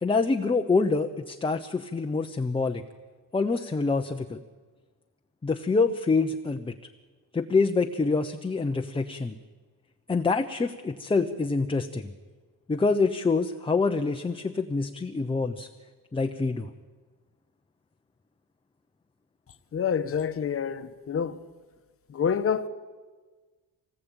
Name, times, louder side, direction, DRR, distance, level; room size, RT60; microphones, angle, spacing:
voice 1, 0.0-2.8 3.3-4.4 5.4-6.7 7.3-9.4 10.1-12.1 12.7-15.7 16.1-16.7, left 4 dB, 15° left, 0.9 m, -26 dB
voice 2, 19.7-21.4 22.1-22.7, left 7 dB, 35° left, 1.2 m, -27 dB
25.5 x 19.5 x 9.0 m
cardioid pair, 145°, 37 cm